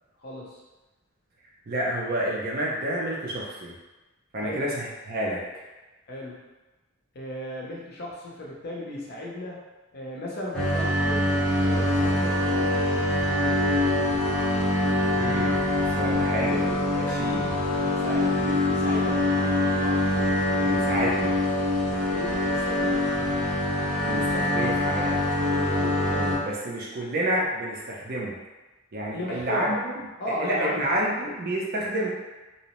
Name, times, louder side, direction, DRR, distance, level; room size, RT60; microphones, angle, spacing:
voice 1, 0.2-0.6 4.4-4.7 6.1-6.4 7.1-9.6 9.9-14.1 17.8-20.0 22.1-23.4 29.1-29.8 30.2-30.8, equal, 50° left, -3 dB, 0.6 m, -36 dB
voice 2, 1.7-3.8 4.3-5.4 15.1-17.6 20.6-21.4 24.0-28.4 28.9-29.9 30.4-32.1, right 1 dB, 45° right, -3 dB, 0.5 m, -29 dB
sound 1, 10.5-26.4, left 1 dB, 5° left, 0.7 m, -24 dB
2.7 x 2.0 x 2.9 m, 1.1 s
head